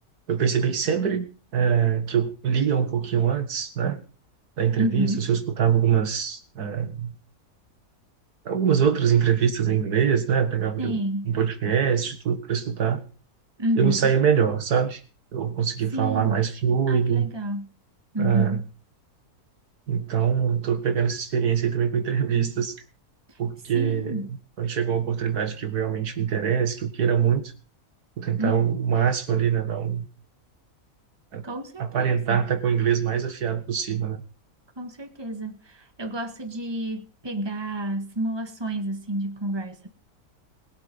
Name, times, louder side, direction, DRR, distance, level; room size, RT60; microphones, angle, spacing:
voice 1, 0.3-1.3 1.5-4.0 4.6-7.2 8.5-11.0 11.2-13.0 13.8-15.0 15.3-17.3 18.2-18.6 19.9-22.8 23.4-24.3 24.6-27.5 28.2-30.1 31.3-31.5 31.8-34.2, right 7 dB, 85° right, 2.1 m, -23 dB
voice 2, 4.8-5.3 10.8-11.4 13.6-14.0 15.9-16.5 16.9-17.8 18.1-18.7 23.7-24.4 28.4-28.8 31.4-32.4 34.8-39.9, right 1 dB, 15° right, 1.8 m, -30 dB
21.0 x 8.1 x 5.4 m
omnidirectional pair, 1.6 m